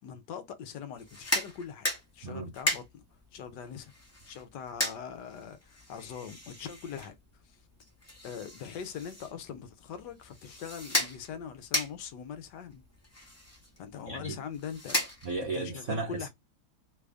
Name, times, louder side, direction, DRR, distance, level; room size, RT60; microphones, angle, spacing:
voice 1, 0.0-1.9 2.1-3.0 3.3-3.9 4.3-7.1 7.4-7.6 8.2-12.9 13.8-15.0 15.5-16.3, left 7 dB, 70° left, 1.2 m, -42 dB
sound 1, 0.9-15.6, left 1 dB, 20° left, 0.4 m, -37 dB
voice 2, 14.1-14.4 15.2-16.3, right 3 dB, 70° right, 0.7 m, -35 dB
3.3 x 2.5 x 3.3 m
omnidirectional pair, 2.1 m